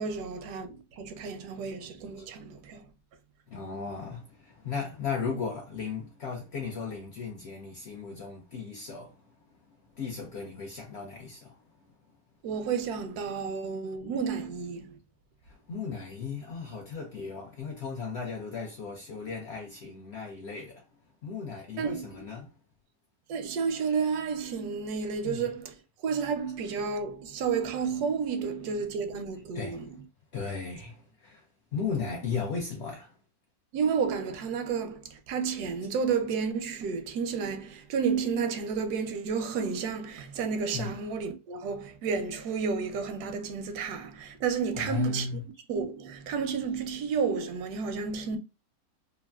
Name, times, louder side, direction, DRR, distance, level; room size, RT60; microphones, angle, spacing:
voice 1, 0.0-2.9 12.4-15.0 21.8-22.0 23.3-25.7 26.0-29.9 33.7-45.3 45.7-48.4, right 6 dB, 85° right, 1.1 m, -31 dB
voice 2, 3.5-9.6 9.9-11.6 15.4-20.8 21.2-22.5 23.8-23.9 25.2-25.5 26.9-27.0 29.5-29.9 30.3-31.5 31.7-33.1 40.7-41.0 44.7-45.5, left 5 dB, 70° left, 0.6 m, -36 dB
3.0 x 2.3 x 2.3 m
omnidirectional pair, 1.6 m